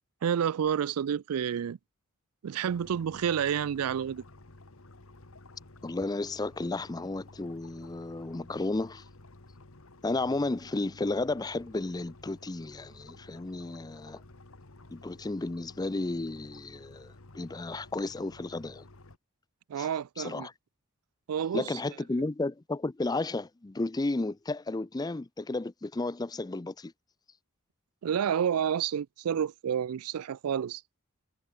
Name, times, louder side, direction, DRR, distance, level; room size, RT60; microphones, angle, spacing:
voice 1, 0.2-1.8 2.4-4.2 19.7-20.5 21.3-21.7 28.0-30.8, right 8 dB, 80° right, 0.4 m, -29 dB
sound 1, 2.7-19.2, left 2 dB, 65° left, 1.7 m, -52 dB
voice 2, 5.8-9.0 10.0-14.2 14.9-18.8 19.8-19.9 20.2-20.5 21.5-26.9, left 2 dB, 20° left, 0.5 m, -33 dB
head